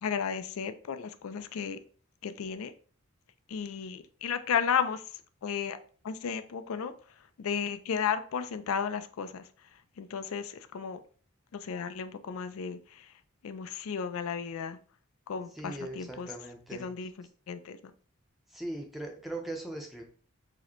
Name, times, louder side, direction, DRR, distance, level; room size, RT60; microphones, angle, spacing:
voice 1, 0.0-1.8 2.2-2.7 3.5-5.0 5.4-5.8 6.0-6.9 7.4-9.5 10.0-11.0 11.5-13.1 13.4-14.8 15.3-16.3 16.7-17.9, left 7 dB, 80° left, 11 dB, 0.4 m, -34 dB
voice 2, 15.6-16.9 18.5-20.0, right 1 dB, ahead, 1 dB, 0.6 m, -39 dB
4.8 x 2.1 x 4.3 m, 0.43 s
head